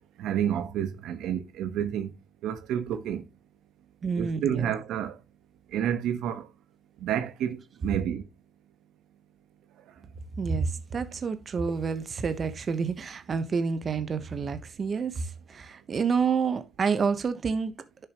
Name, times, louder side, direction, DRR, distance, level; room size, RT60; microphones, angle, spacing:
voice 1, 0.2-2.1 2.4-3.2 4.2-5.1 5.7-6.5 7.0-8.2, right 9 dB, 85° right, 1.2 m, -29 dB
voice 2, 4.0-4.7 10.4-17.7, right 5 dB, 45° right, 1.2 m, -29 dB
10.5 x 6.9 x 3.1 m
cardioid pair, 90°, 0 cm